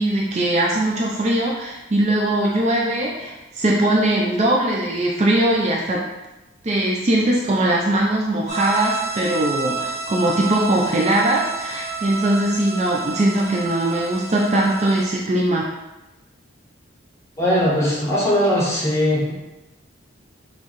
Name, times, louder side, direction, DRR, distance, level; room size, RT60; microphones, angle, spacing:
voice 1, 0.0-6.0 6.6-15.7, right 1 dB, 35° right, -2 dB, 0.4 m, -20 dB
sound 1, 8.5-15.1, right 5 dB, 35° left, 1.1 m, -30 dB
voice 2, 17.4-19.3, equal, 15° left, -8 dB, 1.2 m, -19 dB
4.6 x 3.1 x 3.0 m, 1.0 s
head